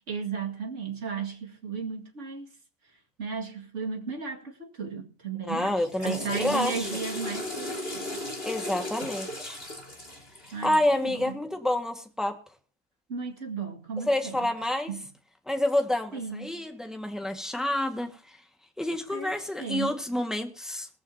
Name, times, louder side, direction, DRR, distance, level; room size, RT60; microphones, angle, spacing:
voice 1, 0.1-2.5 3.2-8.2 10.5-11.4 13.1-14.5 14.9-15.1 16.1-16.6 19.1-19.3 19.6-19.9, right 5 dB, 50° right, 2.4 m, -35 dB
voice 2, 5.5-6.9 8.4-9.6 10.6-12.4 14.1-14.9 15.5-18.4 18.8-20.9, left 1 dB, ahead, 1.6 m, -28 dB
Water / Toilet flush, 5.7-11.0, left 1 dB, 40° left, 4.3 m, -36 dB
19.0 x 14.5 x 2.8 m
omnidirectional pair, 1.6 m